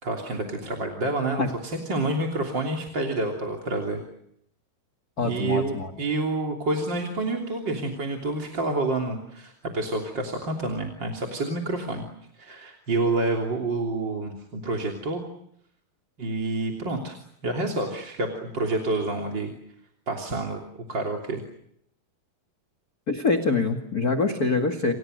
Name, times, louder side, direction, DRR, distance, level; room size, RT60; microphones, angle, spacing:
voice 1, 0.0-4.0 5.2-12.1 12.4-15.2 16.2-17.2 17.4-19.5 20.1-20.6 20.9-21.4, right 2 dB, 30° right, 1 dB, 3.5 m, -28 dB
voice 2, 5.2-5.9 23.1-24.9, left 4 dB, 30° left, 5 dB, 1.9 m, -24 dB
30.0 x 27.5 x 6.6 m, 0.74 s
omnidirectional pair, 4.4 m